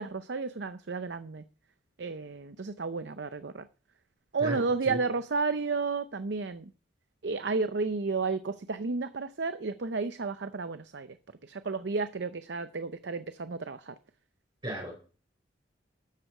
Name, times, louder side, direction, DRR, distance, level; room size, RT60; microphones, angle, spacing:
voice 1, 0.0-1.4 2.0-3.6 4.3-6.6 7.2-11.1 11.5-13.9, right 4 dB, 70° right, 0.6 m, -32 dB
voice 2, 4.4-5.0 14.6-14.9, right 1 dB, 25° right, 4.0 m, -35 dB
12.5 x 7.9 x 6.5 m
head